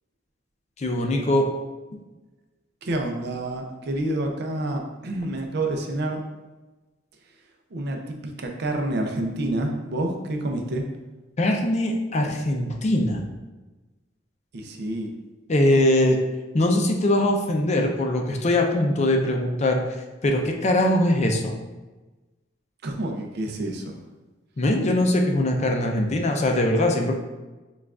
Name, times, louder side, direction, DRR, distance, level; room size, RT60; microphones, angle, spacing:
voice 1, 0.8-1.5 1.9-2.0 11.4-13.2 15.5-16.2 16.5-19.8 20.2-21.5 24.6-27.1, left 1 dB, 35° left, 2 dB, 0.5 m, -21 dB
voice 2, 2.8-6.2 7.7-10.9 14.5-15.1 22.8-24.0, right 1 dB, 60° right, 2 dB, 0.5 m, -28 dB
6.8 x 2.4 x 2.4 m, 1.2 s
head